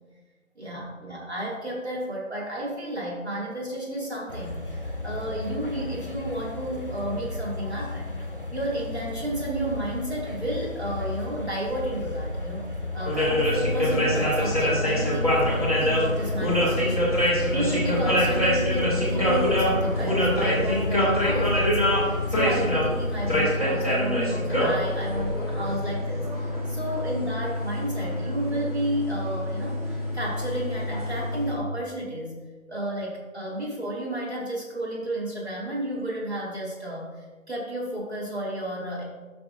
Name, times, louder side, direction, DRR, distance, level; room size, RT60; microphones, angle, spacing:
voice 1, 0.6-8.1 8.5-12.7 12.9-32.4 32.7-39.0, right 1 dB, 50° right, -4 dB, 2.7 m, -32 dB
sound 1, 4.3-23.5, left 2 dB, 40° left, 1.0 m, -34 dB
sound 2, 13.0-31.5, equal, 25° right, 1.6 m, -25 dB
11.5 x 6.3 x 2.7 m, 1.3 s
figure-of-eight pair, 175°, 42 cm